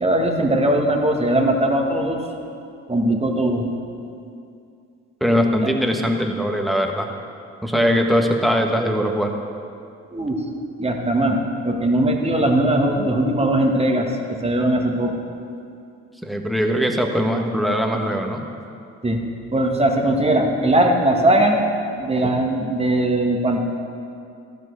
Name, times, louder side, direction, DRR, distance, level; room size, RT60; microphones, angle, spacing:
voice 1, 0.0-2.2 2.9-3.7 5.6-5.7 7.7-7.9 10.1-10.4 10.8-11.4 11.6-15.2 19.0-19.2 19.5-21.7 22.0-23.6, right 1 dB, 20° right, 2 dB, 1.7 m, -20 dB
voice 2, 5.2-7.1 7.6-9.3 16.2-18.4, equal, ahead, 2 dB, 1.4 m, -20 dB
13.5 x 5.3 x 6.4 m, 2.5 s
hypercardioid pair, 50°, 33 cm